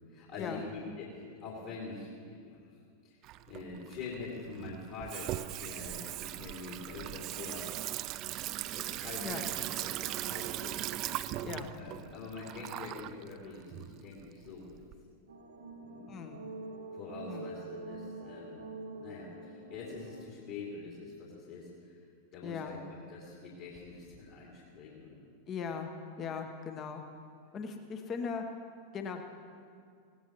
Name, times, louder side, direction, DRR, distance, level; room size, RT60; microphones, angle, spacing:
voice 1, 0.1-2.8 3.0-3.2 3.5-7.7 8.7-9.5 9.8-10.9 11.2-11.3 11.7-14.7 15.8-16.2 16.9-22.0 22.3-25.2, left 4 dB, 45° left, -4 dB, 2.9 m, -45 dB
Water tap faucet / Sink (filling or washing), 3.2-14.9, right 14 dB, 40° right, 0.4 m, -39 dB
sound 1, 15.3-20.3, right 3 dB, 70° right, 1.9 m, -45 dB
voice 2, 16.1-16.4 17.3-17.5 22.4-22.8 25.5-25.9 26.2-27.0 27.5-28.4 28.9-29.2, left 6 dB, 30° left, 5 dB, 1.3 m, -38 dB
19.5 x 17.0 x 3.1 m, 2.2 s
figure-of-eight pair, 90°, 0 cm